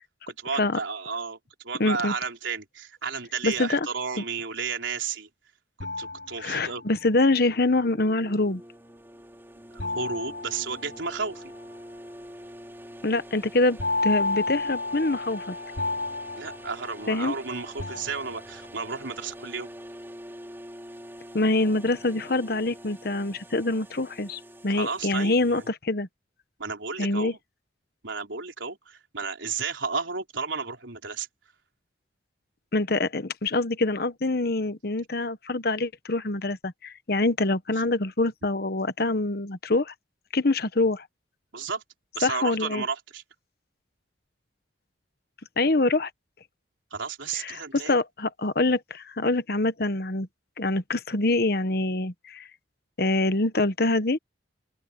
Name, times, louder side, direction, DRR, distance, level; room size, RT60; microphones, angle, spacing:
voice 1, 0.3-1.4 1.6-5.3 6.0-6.8 9.7-11.4 16.3-19.7 24.7-25.6 26.6-27.4 28.0-31.3 41.5-41.8 42.1-43.2 46.9-48.0, right 5 dB, 90° right, 4.1 m, -33 dB
voice 2, 1.8-2.1 3.4-3.9 6.4-8.6 13.0-15.5 17.1-17.3 21.3-26.1 27.0-27.3 32.7-39.9 40.3-41.0 42.2-42.8 45.6-46.1 47.4-50.3 50.6-52.4 53.0-54.2, left 2 dB, 55° left, 1.1 m, -25 dB
sound 1, 5.8-7.0 9.8-11.4 13.8-17.4 17.8-18.7, left 3 dB, 70° left, 2.9 m, -31 dB
sound 2, 7.8-25.7, equal, 10° right, 3.4 m, -45 dB
open air
head